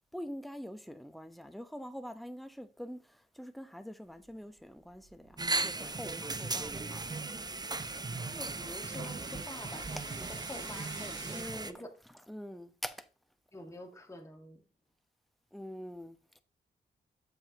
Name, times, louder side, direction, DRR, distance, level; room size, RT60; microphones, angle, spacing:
voice 1, 0.1-7.1 10.0-10.3 11.2-13.1 15.5-16.4, equal, ahead, 0.9 m, -45 dB
sound 1, 4.4-11.4, right 4 dB, 90° right, 2.2 m, -53 dB
sound 2, 5.4-11.7, right 3 dB, 20° right, 0.6 m, -37 dB
voice 2, 8.3-11.9 13.5-14.6, left 1 dB, 15° left, 1.6 m, -47 dB
8.6 x 7.1 x 2.9 m
cardioid pair, 65°, 18 cm